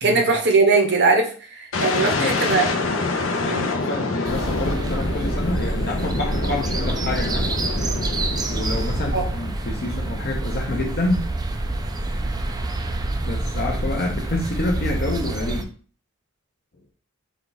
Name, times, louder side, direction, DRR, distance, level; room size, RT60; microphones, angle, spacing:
voice 1, 0.0-2.9 3.4-3.7 9.1-9.2, right 3 dB, 60° right, 3 dB, 0.9 m, -20 dB
sound 1, 1.7-9.6, left 3 dB, 85° left, 0.7 m, -27 dB
voice 2, 2.0-2.3 2.6-2.9 3.3-7.5 8.5-11.3 13.2-15.7, left 2 dB, 55° left, 0 dB, 0.7 m, -28 dB
sound 2, 4.3-15.7, right 2 dB, 20° right, 0.4 m, -27 dB
4.5 x 2.4 x 3.9 m, 0.42 s
head